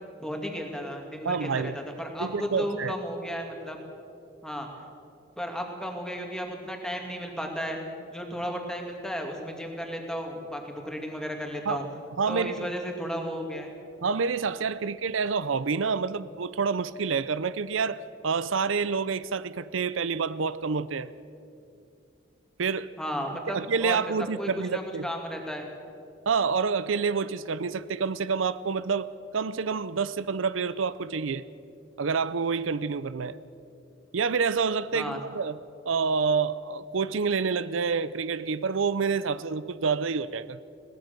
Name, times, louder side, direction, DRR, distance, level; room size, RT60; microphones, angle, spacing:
voice 1, 0.2-3.8 4.4-4.7 5.4-7.8 8.1-11.9 12.3-13.7 23.0-24.0 24.4-25.7 34.9-35.2, equal, 5° left, 2.5 m, -34 dB
voice 2, 1.2-1.8 2.2-3.0 11.7-11.9 12.2-12.7 14.0-21.1 22.6-22.9 23.5-25.1 26.3-31.4 32.0-33.4 34.1-35.6 35.9-40.6, right 5 dB, 85° right, 0.6 m, -28 dB
21.0 x 18.5 x 6.8 m
head